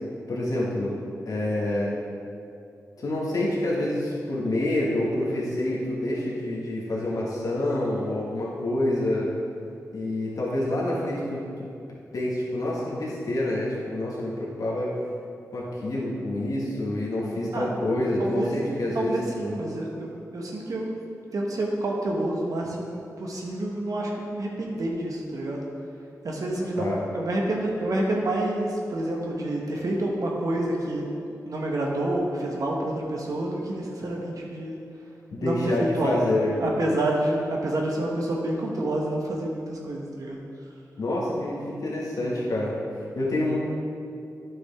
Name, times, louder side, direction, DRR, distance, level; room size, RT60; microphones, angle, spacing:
voice 1, 0.3-1.0 1.2-2.0 3.0-9.3 9.9-11.7 12.1-15.0 15.5-19.7 26.8-27.0 35.3-36.5 41.0-42.7 43.1-43.6, left 1 dB, 70° left, -5 dB, 1.7 m, -27 dB
voice 2, 18.2-18.5 18.9-21.0 21.3-25.7 26.2-31.2 31.5-34.8 35.4-36.3 36.6-40.4, right 1 dB, 70° right, -1 dB, 1.1 m, -28 dB
9.4 x 6.2 x 3.6 m, 2.5 s
cardioid pair, 60°, 6 cm